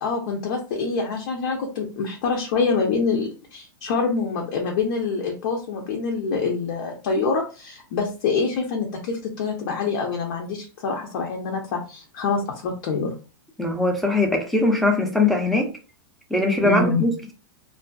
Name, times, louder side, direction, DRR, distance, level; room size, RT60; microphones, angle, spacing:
voice 1, 0.0-13.1 16.6-17.0, left 4 dB, 60° left, 0.7 m, -25 dB
voice 2, 13.6-15.7 16.3-17.3, left 2 dB, ahead, 0.6 m, -21 dB
2.5 x 2.4 x 2.3 m
hypercardioid pair, 130°, 12 cm